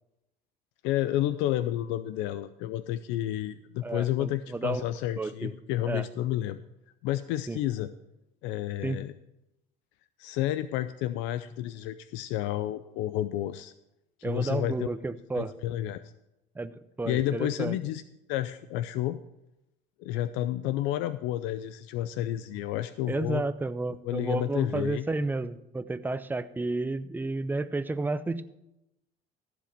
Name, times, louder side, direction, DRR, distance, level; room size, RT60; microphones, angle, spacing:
voice 1, 0.8-6.6 7.0-7.9 8.4-9.1 10.2-13.7 14.2-14.9 15.3-16.0 17.0-18.0 18.3-19.2 20.0-23.4 24.0-25.1, left 13 dB, 75° left, 13 dB, 0.5 m, -30 dB
voice 2, 3.8-4.8 5.2-5.5 5.9-6.1 7.5-7.6 8.8-9.0 14.2-15.5 16.6-17.8 23.1-28.4, right 3 dB, 10° right, 13 dB, 0.5 m, -31 dB
14.5 x 5.1 x 6.7 m, 0.90 s
supercardioid pair, 100°, 19 cm